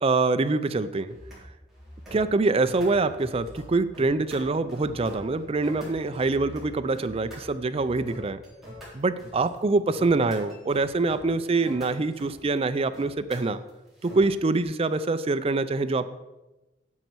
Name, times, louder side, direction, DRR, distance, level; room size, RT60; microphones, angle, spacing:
voice 1, 0.0-1.1 2.1-8.4 8.9-13.6 14.0-16.0, right 3 dB, 30° right, 11 dB, 0.4 m, -25 dB
sound 1, 1.1-1.4 1.7-2.2 2.6-3.6 3.9-6.6 6.9-7.4 7.7-14.2, equal, ahead, 3.8 m, -44 dB
9.5 x 7.9 x 4.6 m, 1.0 s
head